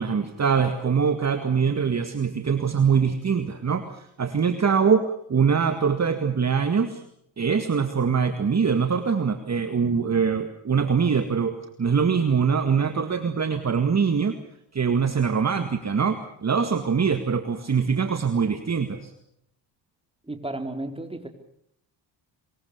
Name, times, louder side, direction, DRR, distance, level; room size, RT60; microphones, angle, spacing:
voice 1, 0.0-7.0 7.4-14.4 14.7-19.1, right 6 dB, 30° right, 8 dB, 2.0 m, -23 dB
voice 2, 20.3-21.3, right 2 dB, 10° right, 5 dB, 4.2 m, -33 dB
24.0 x 22.0 x 7.0 m, 0.73 s
supercardioid pair, 60°, 49 cm